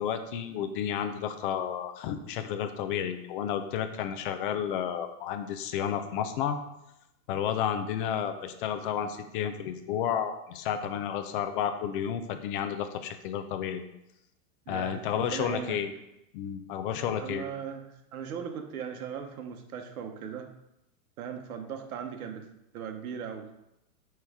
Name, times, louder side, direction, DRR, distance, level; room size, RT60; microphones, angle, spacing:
voice 1, 0.0-6.6 7.3-13.8 14.7-15.9 16.3-17.4, left 9 dB, 35° left, 8 dB, 0.5 m, -31 dB
voice 2, 14.7-15.8 17.2-20.5 21.2-22.5 22.7-23.5, right 7 dB, 70° right, 5 dB, 1.1 m, -38 dB
9.0 x 3.2 x 3.5 m, 0.86 s
hypercardioid pair, 140°, 45 cm